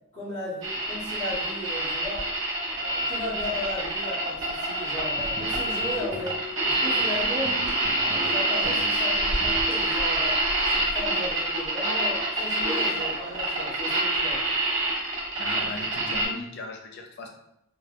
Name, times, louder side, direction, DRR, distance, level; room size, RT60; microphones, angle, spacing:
voice 1, 0.1-2.2 2.7-6.4 6.7-7.5 7.9-10.4 10.7-14.4, left 1 dB, 30° left, -12 dB, 0.9 m, -35 dB
sound 1, 0.6-16.3, right 1 dB, 60° right, 0.9 m, -26 dB
sound 2, 5.0-10.5, left 1 dB, 25° right, 0.4 m, -40 dB
voice 2, 15.4-17.3, left 2 dB, 55° left, 2 dB, 0.4 m, -38 dB
3.1 x 2.1 x 2.4 m, 0.77 s
head